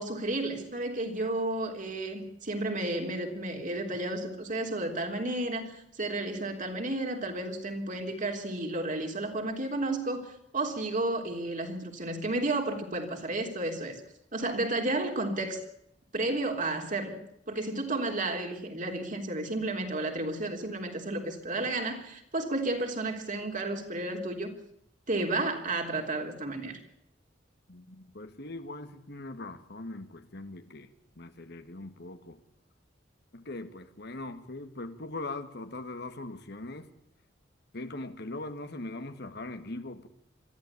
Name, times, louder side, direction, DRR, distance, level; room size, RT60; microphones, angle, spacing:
voice 1, 0.0-14.0 14.3-15.6 16.1-17.2 17.5-24.5 25.1-26.8, right 2 dB, 45° right, 3.5 m, -32 dB
voice 2, 27.7-30.9 31.2-32.4 33.3-36.9 37.7-40.1, left 2 dB, 60° left, 1.9 m, -41 dB
22.5 x 14.0 x 8.5 m
head